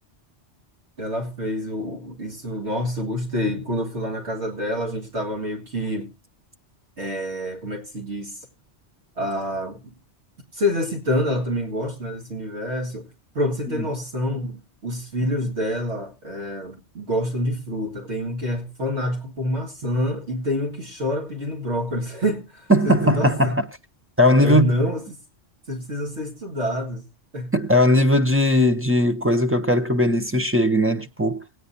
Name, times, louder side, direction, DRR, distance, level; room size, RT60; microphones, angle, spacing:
voice 1, 1.0-6.1 7.0-8.3 9.2-9.8 10.5-13.1 13.3-23.6 24.4-25.0 25.7-27.0 27.3-27.5, left 1 dB, 70° right, 2.3 m, -27 dB
voice 2, 22.7-23.7 24.2-24.7 27.5-31.4, equal, 15° right, 0.4 m, -19 dB
18.5 x 9.3 x 2.7 m
omnidirectional pair, 1.2 m